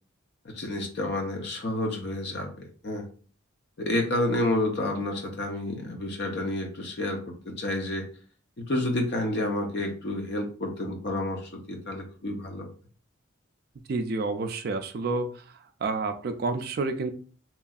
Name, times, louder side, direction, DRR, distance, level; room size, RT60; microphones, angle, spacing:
voice 1, 0.4-2.5 2.8-3.0 3.8-7.2 7.5-8.0 8.6-12.7, left 1 dB, 55° left, 3 dB, 0.6 m, -29 dB
voice 2, 13.9-15.3 15.8-17.1, right 3 dB, 50° right, 7 dB, 0.3 m, -29 dB
2.9 x 2.6 x 2.3 m, 0.40 s
head